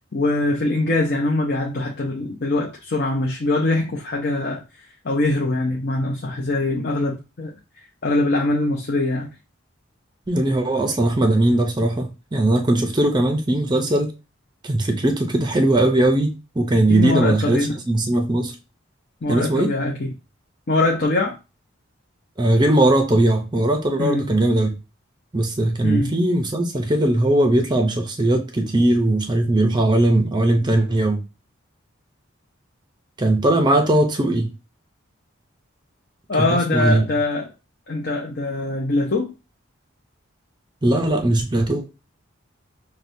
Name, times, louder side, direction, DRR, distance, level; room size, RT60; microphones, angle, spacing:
voice 1, 0.1-4.6 5.0-7.5 8.0-9.3 16.9-17.7 19.2-20.1 20.7-21.4 24.0-24.3 25.8-26.1 36.3-37.5 37.9-39.3, left 2 dB, 50° left, 0.6 m, -22 dB
voice 2, 10.3-14.1 14.6-18.5 19.3-19.7 22.4-24.7 25.3-31.2 33.2-34.5 36.4-37.0 40.8-41.8, right 1 dB, 20° right, 0.5 m, -19 dB
5.8 x 2.2 x 2.6 m
head